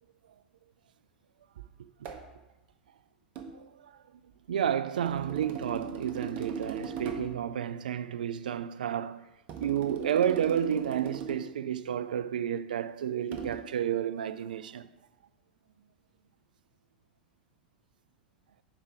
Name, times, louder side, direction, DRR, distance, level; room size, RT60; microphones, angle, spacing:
sound 1, 2.0-2.3 3.4-3.6 5.1-7.4 9.5-11.6 13.3-13.6, right 5 dB, 40° right, 1.0 m, -39 dB
voice 1, 4.5-9.2 9.6-14.9, right 9 dB, 70° right, 0.3 m, -31 dB
5.5 x 4.8 x 6.0 m
figure-of-eight pair, 90°, 5 cm